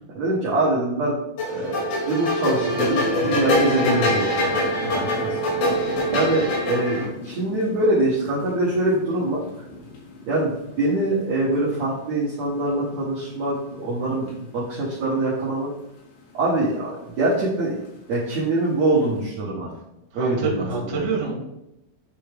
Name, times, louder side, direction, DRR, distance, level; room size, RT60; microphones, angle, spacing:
voice 1, 0.1-1.1 1.4-4.6 4.9-5.5 6.1-9.4 10.3-15.7 16.3-17.8 18.1-19.7 20.1-21.1, right 2 dB, 75° right, -7 dB, 1.6 m, -24 dB
sound 1, 1.4-7.0, left 1 dB, 85° left, 4.8 m, -24 dB
sound 2, 2.5-19.2, left 2 dB, 65° left, 3.0 m, -40 dB
voice 2, 4.8-5.1 20.2-21.3, right 4 dB, 55° right, -3 dB, 2.9 m, -27 dB
10.0 x 3.4 x 3.4 m, 0.87 s
omnidirectional pair, 5.0 m